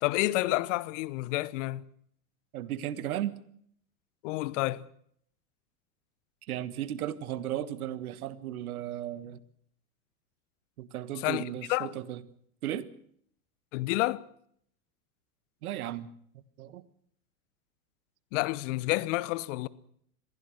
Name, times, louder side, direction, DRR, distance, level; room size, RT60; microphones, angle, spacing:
voice 1, 0.0-1.8 4.2-4.8 11.2-11.4 11.7-11.9 13.7-14.2 18.3-19.7, left 19 dB, 55° left, 1.0 m, -29 dB
voice 2, 2.5-3.3 6.5-9.4 10.8-12.2 12.6-12.9 15.6-16.1 16.6-16.8, right 12 dB, 75° right, 1.5 m, -35 dB
22.0 x 16.0 x 7.8 m
hypercardioid pair, 105°, 44 cm